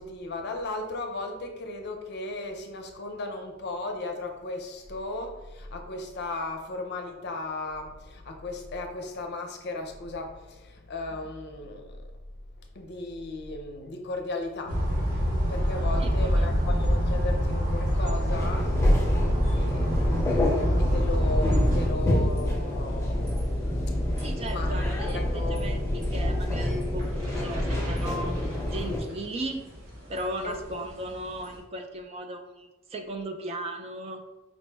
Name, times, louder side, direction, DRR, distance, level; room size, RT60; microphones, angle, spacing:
voice 1, 0.0-12.1 12.6-14.8 15.5-18.7 19.3-20.0 20.8-23.5 23.9-24.0 24.5-24.7 25.1-25.8 30.4-30.6, left 2 dB, 55° left, 4 dB, 0.5 m, -36 dB
sound 1, 14.7-21.9, equal, 45° right, 0.9 m, -25 dB
voice 2, 16.0-16.5 24.2-28.4 28.7-29.6 30.1-34.2, right 1 dB, 30° right, 5 dB, 0.3 m, -36 dB
sound 2, 18.3-29.0, left 1 dB, 15° left, 0.7 m, -27 dB
sound 3, 21.4-31.6, equal, 80° right, 1.3 m, -46 dB
5.1 x 2.0 x 3.3 m, 1.1 s
head